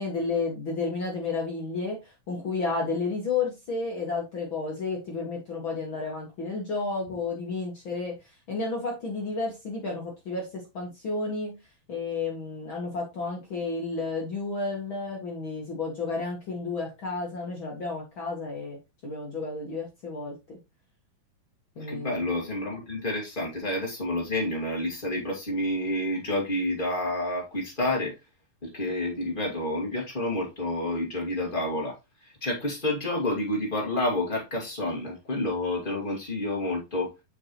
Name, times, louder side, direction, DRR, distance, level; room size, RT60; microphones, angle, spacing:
voice 1, 0.0-8.1 8.5-11.6 11.9-18.8 19.0-20.6 21.7-22.2, left 3 dB, 60° left, 1.3 m, -32 dB
voice 2, 21.8-28.1 28.6-32.0 32.2-37.1, left 1 dB, 25° left, 1.1 m, -29 dB
6.5 x 5.9 x 3.0 m
omnidirectional pair, 4.5 m